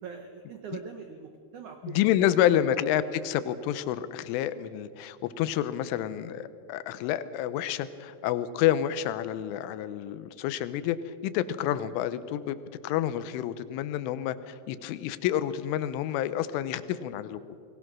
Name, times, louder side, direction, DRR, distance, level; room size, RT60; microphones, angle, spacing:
voice 1, 0.0-2.6, right 6 dB, 85° right, 5 dB, 1.7 m, -42 dB
voice 2, 1.8-11.0 11.2-12.6 12.8-17.4, left 11 dB, 85° left, 13 dB, 3.4 m, -28 dB
29.5 x 21.0 x 6.2 m, 2.4 s
omnidirectional pair, 5.5 m